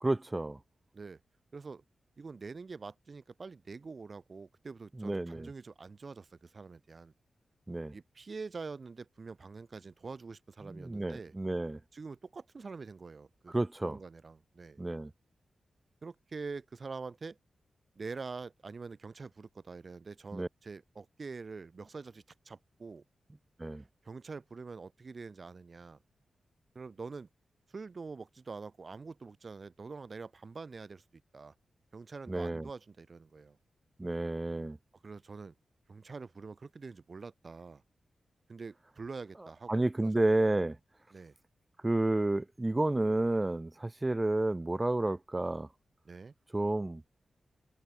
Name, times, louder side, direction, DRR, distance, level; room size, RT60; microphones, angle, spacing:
voice 1, 0.0-0.6 5.0-5.5 7.7-7.9 10.6-11.8 13.5-14.0 14.8-15.1 20.3-20.5 23.6-23.8 32.3-32.7 34.0-34.8 39.7-40.8 41.8-45.7 46.5-47.0, right 2 dB, 20° right, 0.4 m, -31 dB
voice 2, 1.5-1.8 2.2-7.1 7.9-11.3 11.9-13.5 13.8-14.8 16.0-17.4 18.0-23.0 24.0-26.0 26.7-27.3 27.7-31.0 31.3-31.5 31.9-33.6 35.0-35.5 35.9-37.8 38.5-40.1 41.1-41.3 46.0-46.3, right 4 dB, 40° right, 2.9 m, -45 dB
wide cardioid pair, 115°, 0 cm